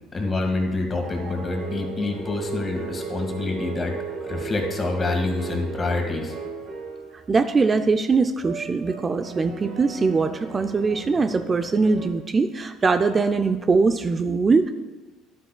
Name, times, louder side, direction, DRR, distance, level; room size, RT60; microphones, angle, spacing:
voice 1, 0.1-4.0 4.2-6.4, left 3 dB, 30° left, 3 dB, 1.8 m, -27 dB
sound 1, 1.0-7.3 7.6-7.9 8.4-12.1, right 4 dB, 60° right, 1.9 m, -35 dB
voice 2, 7.3-14.7, right 4 dB, 30° right, 8 dB, 0.5 m, -21 dB
11.0 x 8.3 x 2.3 m, 1.3 s
hypercardioid pair, 65°, 0 cm